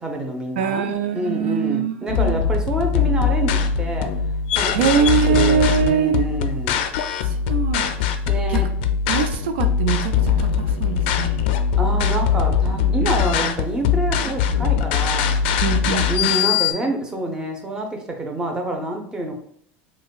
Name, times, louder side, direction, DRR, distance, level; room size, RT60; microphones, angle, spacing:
voice 1, 0.0-4.1 4.6-6.9 8.3-8.7 11.8-15.4 16.1-19.4, right 1 dB, 10° right, 2 dB, 0.6 m, -27 dB
voice 2, 0.6-2.4 4.7-6.3 7.2-7.9 8.5-8.6 9.1-11.5 13.3-13.6 15.6-16.5, right 7 dB, 90° right, 8 dB, 0.4 m, -23 dB
sound 1, 2.1-16.7, left 7 dB, 75° left, 0.4 m, -21 dB
4.8 x 2.3 x 2.3 m, 0.64 s
supercardioid pair, 135°, 6 cm